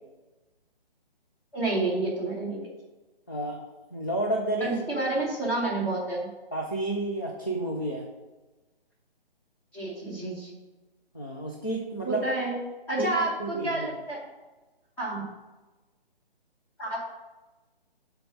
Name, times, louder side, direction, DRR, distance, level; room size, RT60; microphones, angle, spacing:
voice 1, 1.5-2.7 4.6-6.3 9.7-10.6 12.0-12.6 12.9-14.2 15.0-15.2 16.8-17.1, right 2 dB, 5° left, -4 dB, 0.8 m, -29 dB
voice 2, 3.3-3.6 3.9-5.1 6.5-8.1 11.1-12.2 13.0-13.1 13.4-13.9, right 1 dB, 25° left, -1 dB, 0.3 m, -31 dB
7.3 x 3.5 x 5.2 m, 1.2 s
hypercardioid pair, 155°, 30 cm